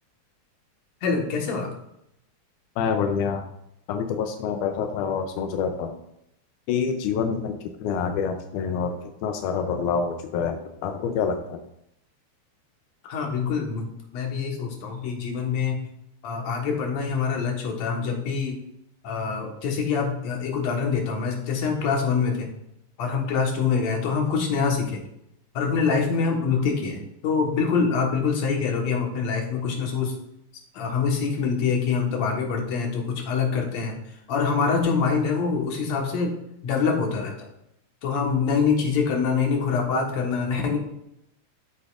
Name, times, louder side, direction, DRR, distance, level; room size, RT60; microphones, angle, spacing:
voice 1, 1.0-1.7 13.0-13.9 14.1-15.8 16.2-18.6 19.0-22.5 23.0-25.0 25.5-30.1 30.7-34.0 34.3-36.3 36.6-37.5 38.0-40.8, left 5 dB, 65° left, 1 dB, 2.5 m, -25 dB
voice 2, 2.8-3.4 3.9-6.0 6.7-11.6, left 6 dB, 90° left, 6 dB, 2.1 m, -27 dB
13.0 x 5.2 x 2.4 m, 0.79 s
omnidirectional pair, 3.4 m